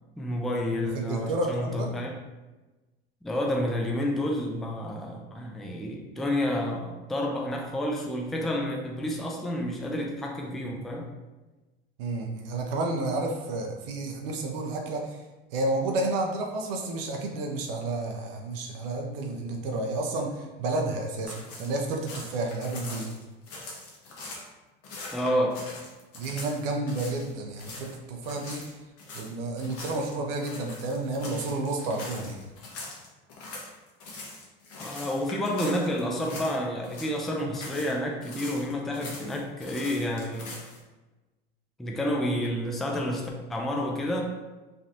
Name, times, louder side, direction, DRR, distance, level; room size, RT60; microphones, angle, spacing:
voice 1, 0.2-2.1 3.2-11.1 25.1-25.7 34.8-40.5 41.8-44.2, left 1 dB, ahead, 0 dB, 0.4 m, -29 dB
voice 2, 0.9-1.9 12.0-15.2 15.5-23.1 26.1-28.7 29.1-32.4, right 2 dB, 70° right, 2 dB, 0.6 m, -31 dB
sound 1, 21.3-24.5 24.8-27.3 27.6-27.9 28.2-36.6 36.8-37.9 38.2-40.8, left 2 dB, 50° left, 1.1 m, -42 dB
3.3 x 2.4 x 2.7 m, 1.1 s
hypercardioid pair, 85°, 30 cm